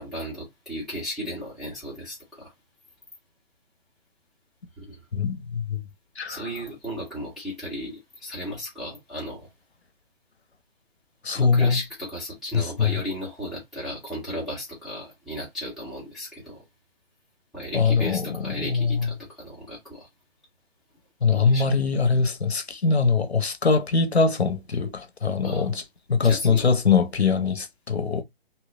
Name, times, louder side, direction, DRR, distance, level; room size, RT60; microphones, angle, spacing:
voice 1, 0.0-2.5 4.8-5.0 6.3-9.5 11.3-16.6 17.5-20.1 21.3-21.7 25.4-25.7 26.2-26.7, equal, ahead, 0.5 m, -35 dB
voice 2, 5.1-5.8 6.2-6.4 11.2-11.8 12.5-13.0 17.7-19.1 21.2-25.8 26.1-28.2, left 5 dB, 85° left, 0.9 m, -22 dB
2.9 x 2.2 x 3.8 m
figure-of-eight pair, 140°, 31 cm